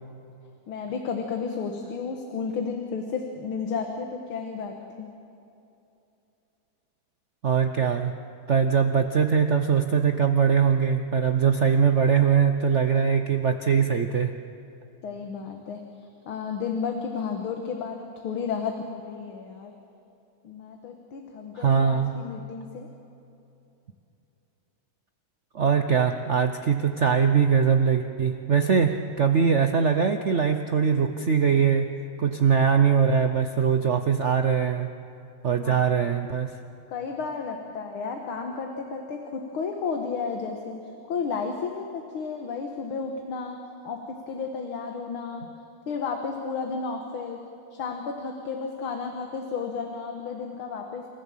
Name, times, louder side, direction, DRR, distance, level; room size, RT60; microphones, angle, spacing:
voice 1, 0.7-5.1 15.0-15.8 16.3-19.7 20.4-22.9 35.6-35.8 36.9-40.8 41.1-45.5 45.9-47.4 47.7-51.1, left 5 dB, 85° left, 3 dB, 2.2 m, -32 dB
voice 2, 7.4-8.1 8.5-14.3 21.6-22.2 25.5-31.9 32.2-34.9 35.4-36.6, right 6 dB, 70° right, 6 dB, 0.6 m, -22 dB
28.0 x 15.0 x 7.4 m, 2.8 s
omnidirectional pair, 2.3 m